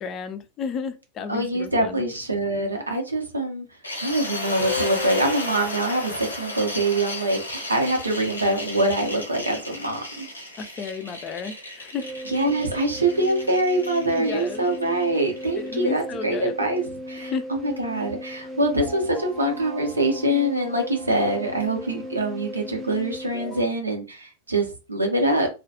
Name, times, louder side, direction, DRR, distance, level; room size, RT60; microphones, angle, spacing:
voice 1, 0.0-2.0 10.6-12.1 14.2-14.7 15.6-16.5 17.2-17.5, left 5 dB, 30° left, 0.4 m, -33 dB
voice 2, 1.3-3.7 4.0-10.3 12.3-25.5, right 1 dB, 80° right, 0.7 m, -24 dB
sound 1, 3.8-15.8, left 2 dB, 80° left, 0.6 m, -34 dB
sound 2, 12.0-23.6, equal, 15° right, 0.6 m, -37 dB
2.3 x 2.1 x 2.8 m
figure-of-eight pair, 90°, 0 cm